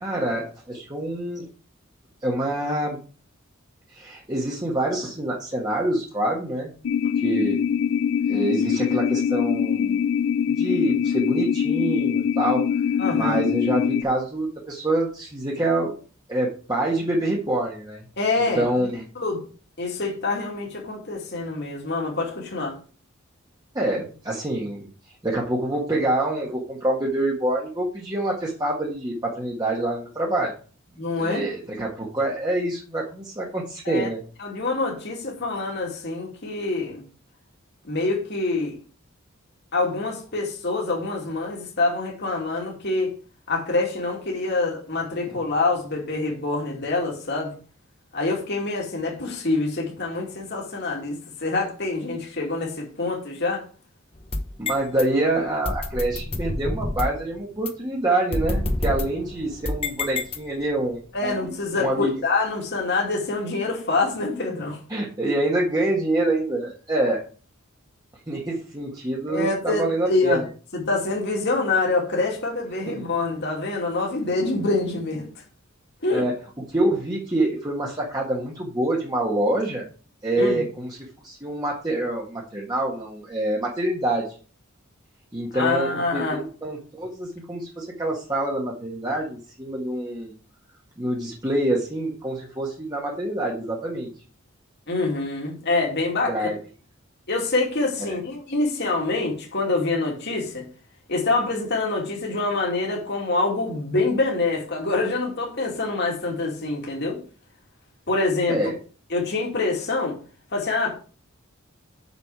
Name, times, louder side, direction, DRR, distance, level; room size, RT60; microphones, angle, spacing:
voice 1, 0.0-1.5 2.2-3.0 3.9-6.7 7.2-7.6 8.3-10.0 10.5-12.6 13.1-15.9 16.3-18.0 18.5-19.0 23.7-24.9 25.2-30.5 31.2-34.2 45.3-45.4 54.6-62.2 64.9-67.2 68.3-70.5 72.9-73.1 76.1-76.4 76.7-79.8 80.2-81.0 81.2-84.4 85.3-90.3 91.0-94.1 96.3-96.6 98.0-98.2 108.5-108.7, right 1 dB, 20° right, 1.6 m, -26 dB
sound 1, 6.8-14.0, left 7 dB, 75° left, 0.4 m, -23 dB
voice 2, 13.0-13.4 18.2-19.4 19.8-22.8 31.0-31.4 33.9-34.1 34.4-37.0 37.8-38.8 39.7-43.1 43.5-47.6 48.1-53.6 61.1-64.8 69.3-70.4 70.7-75.3 76.0-76.3 80.4-80.6 85.5-86.4 94.9-96.5 97.3-100.7 101.1-107.2 108.1-108.6 109.1-110.1 110.5-111.0, left 3 dB, 55° left, 2.5 m, -26 dB
sound 2, 54.2-55.0 55.6-57.2 57.7-57.8 58.3-60.8, left 2 dB, 30° left, 1.0 m, -28 dB
7.0 x 6.7 x 4.8 m
head